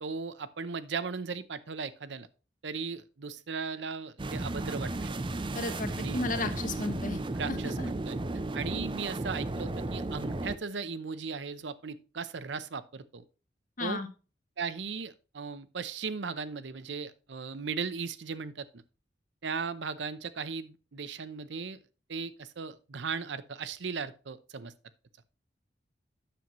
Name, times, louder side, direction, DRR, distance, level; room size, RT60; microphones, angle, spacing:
voice 1, 0.0-2.3 2.6-5.1 6.0-6.2 7.4-8.2 8.5-13.2 13.8-14.0 14.6-18.8 19.4-21.8 22.1-24.7, right 5 dB, 80° right, 0.7 m, -37 dB
sound 1, 4.2-10.6, right 2 dB, 30° right, 0.5 m, -34 dB
voice 2, 5.5-7.2 7.5-7.9 13.8-14.1, left 2 dB, 50° left, 1.3 m, -34 dB
9.8 x 7.6 x 3.0 m
head